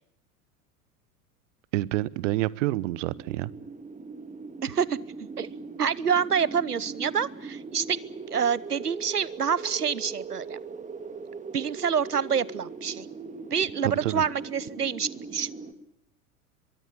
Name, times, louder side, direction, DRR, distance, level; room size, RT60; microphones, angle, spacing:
voice 1, 1.7-3.5 13.8-14.2, right 18 dB, 55° right, 23 dB, 1.0 m, -28 dB
sound 1, 2.7-15.7, right 4 dB, 15° right, 2.0 m, -40 dB
voice 2, 4.6-5.0 5.4-5.5 5.8-8.0 8.3-10.6 11.5-13.1 13.5-15.5, right 7 dB, 90° right, 22 dB, 1.0 m, -27 dB
23.5 x 23.0 x 8.6 m, 0.77 s
figure-of-eight pair, 85°, 45 cm